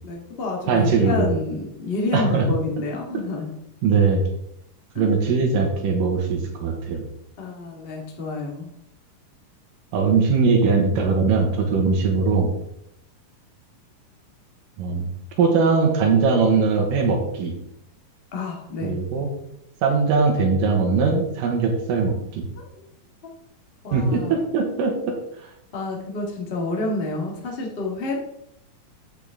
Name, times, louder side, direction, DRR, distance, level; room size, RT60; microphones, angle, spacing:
voice 1, 0.0-3.5 4.9-5.1 7.4-8.7 18.3-18.9 22.5-22.6 23.8-24.4 25.7-28.2, left 3 dB, 35° left, -1 dB, 1.0 m, -29 dB
voice 2, 0.7-1.3 2.1-2.5 3.8-4.2 5.0-7.1 9.9-12.5 14.8-15.1 15.4-17.5 18.8-19.3 19.8-22.4 23.9-25.2, right 4 dB, 80° right, 2 dB, 2.8 m, -20 dB
8.5 x 7.6 x 3.5 m, 0.77 s
omnidirectional pair, 3.9 m